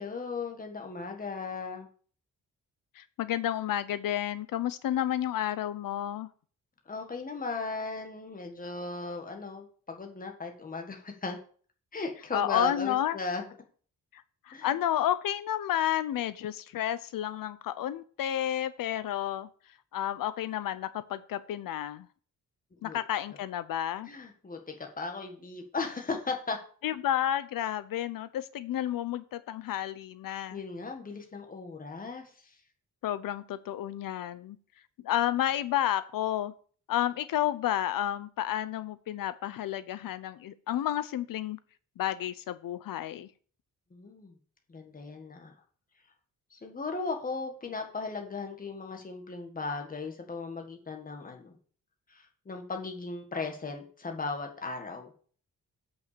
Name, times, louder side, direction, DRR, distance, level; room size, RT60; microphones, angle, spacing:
voice 1, 0.0-1.9 6.9-11.4 11.9-13.5 14.5-14.7 22.8-23.0 24.1-26.6 30.5-32.6 43.9-44.3 44.7-45.5 46.5-51.5 52.1-55.1, left 3 dB, 25° left, 3 dB, 1.7 m, -37 dB
voice 2, 3.0-6.3 12.3-13.2 14.1-19.5 19.9-22.1 22.8-24.1 26.8-30.6 33.0-34.6 35.0-36.5 36.9-41.6 42.0-43.3, left 11 dB, 80° left, 15 dB, 0.7 m, -31 dB
8.2 x 5.7 x 6.7 m, 0.43 s
wide cardioid pair, 140°, 33 cm